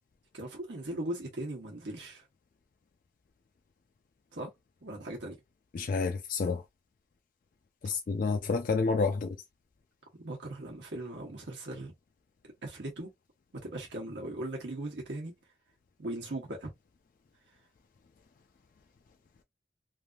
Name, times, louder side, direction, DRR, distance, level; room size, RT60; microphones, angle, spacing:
voice 1, 0.3-2.3 4.3-4.5 4.8-5.4 10.2-11.9 12.6-13.1 13.6-15.3 16.0-16.7, right 1 dB, 85° right, 1.0 m, -38 dB
voice 2, 5.7-6.6 7.8-9.4, left 4 dB, 50° left, 0.3 m, -29 dB
3.2 x 2.5 x 2.3 m
head